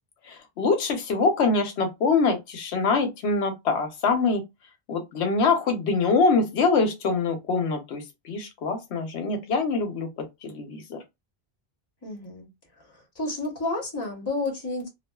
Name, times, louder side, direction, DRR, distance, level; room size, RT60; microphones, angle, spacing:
voice 1, 0.3-4.4 4.9-11.0, left 4 dB, 85° left, 0.9 m, -24 dB
voice 2, 12.0-12.5 12.8-14.9, left 2 dB, 25° left, 0.9 m, -31 dB
2.4 x 2.3 x 2.2 m
omnidirectional pair, 1.1 m